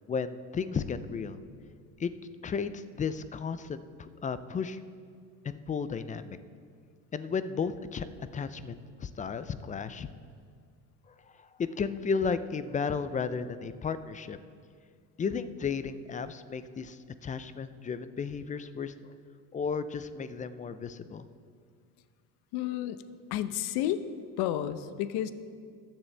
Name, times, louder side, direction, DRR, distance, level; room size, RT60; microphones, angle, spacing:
voice 1, 0.1-1.4 2.0-2.1 2.4-4.8 5.4-6.4 7.1-8.1 8.3-10.1 11.4-14.4 15.2-19.1 19.5-21.3, left 5 dB, 20° left, 13 dB, 0.4 m, -34 dB
voice 2, 22.5-23.0 23.3-24.0 24.4-25.3, left 12 dB, 65° left, 12 dB, 0.8 m, -31 dB
21.5 x 7.3 x 3.3 m, 2.1 s
supercardioid pair, 105°, 43 cm